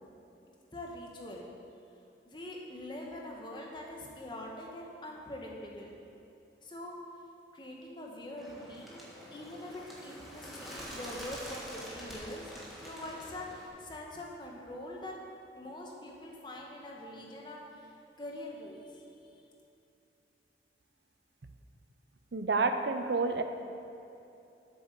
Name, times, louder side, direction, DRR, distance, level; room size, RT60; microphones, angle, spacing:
voice 1, 0.7-1.5 2.2-5.9 6.6-6.9 7.5-12.5 12.8-15.1 15.6-17.9 18.2-19.5, left 1 dB, 25° left, -1 dB, 1.2 m, -44 dB
Bird, 8.4-13.7, equal, ahead, 1.6 m, -46 dB
voice 2, 22.3-23.4, right 3 dB, 70° right, 8 dB, 0.6 m, -29 dB
8.5 x 7.1 x 6.6 m, 2.8 s
head